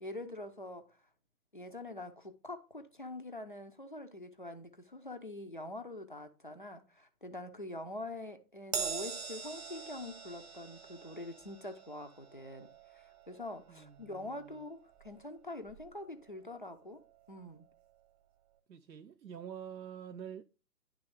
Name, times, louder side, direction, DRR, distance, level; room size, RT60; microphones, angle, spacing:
voice 1, 0.0-1.0 1.5-12.7 12.9-17.7, left 2 dB, 35° left, 0.4 m, -45 dB
Crash cymbal, 8.7-15.4 15.7-15.9 17.0-17.1, right 6 dB, 25° right, 0.8 m, -44 dB
voice 2, 13.7-14.6 18.7-20.4, right 8 dB, 85° right, 0.6 m, -47 dB
9.9 x 3.4 x 3.6 m
figure-of-eight pair, 130°, 49 cm